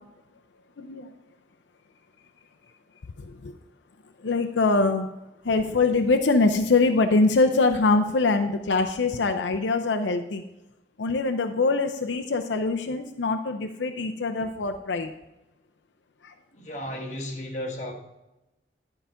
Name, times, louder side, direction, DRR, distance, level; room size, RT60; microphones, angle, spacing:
voice 1, 0.8-1.1 3.2-3.5 4.2-5.1 5.4-10.4 11.0-15.1 16.2-16.3, left 3 dB, 90° left, 5 dB, 0.6 m, -23 dB
voice 2, 16.5-17.9, left 1 dB, 40° left, 1 dB, 1.5 m, -34 dB
11.5 x 4.9 x 5.6 m, 0.97 s
head